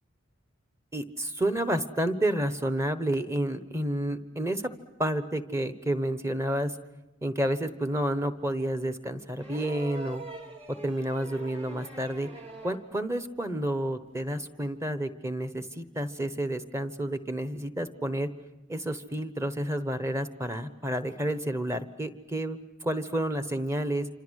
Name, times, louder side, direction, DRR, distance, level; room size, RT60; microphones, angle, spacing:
voice 1, 0.9-4.7 5.0-6.7 7.2-10.2 10.7-12.3 12.6-18.3 18.7-24.1, right 1 dB, 15° right, 10 dB, 1.1 m, -30 dB
sound 1, 9.4-12.9 14.3-14.4, right 3 dB, 30° right, 2.7 m, -43 dB
27.5 x 26.0 x 6.5 m, 1.0 s
head